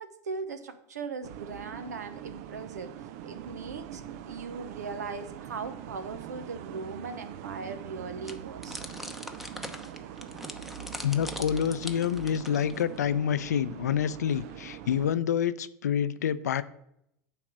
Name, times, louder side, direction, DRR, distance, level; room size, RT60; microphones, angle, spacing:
voice 1, 0.0-2.9 3.2-8.9, right 4 dB, 90° right, 10 dB, 0.9 m, -39 dB
sound 1, 1.2-15.1, right 10 dB, 65° right, 0.6 m, -43 dB
sound 2, 8.2-13.0, equal, ahead, 0.9 m, -42 dB
voice 2, 11.0-16.6, left 9 dB, 85° left, 14 dB, 0.5 m, -27 dB
8.8 x 3.4 x 6.2 m, 0.77 s
hypercardioid pair, 95°, 9 cm